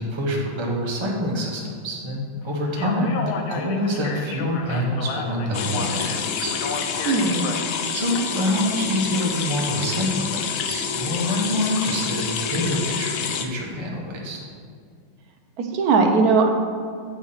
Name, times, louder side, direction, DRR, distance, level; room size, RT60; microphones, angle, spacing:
voice 1, 0.0-6.6 7.9-14.4, left 1 dB, 20° right, -2 dB, 0.8 m, -26 dB
Speech, 2.7-8.0, left 5 dB, 85° left, 1.5 m, -33 dB
sound 1, 5.5-13.5, left 7 dB, 70° left, 0.9 m, -28 dB
voice 2, 7.0-7.5 15.6-16.5, right 4 dB, 60° right, 4 dB, 1.1 m, -19 dB
8.3 x 4.8 x 5.6 m, 2.2 s
omnidirectional pair, 2.2 m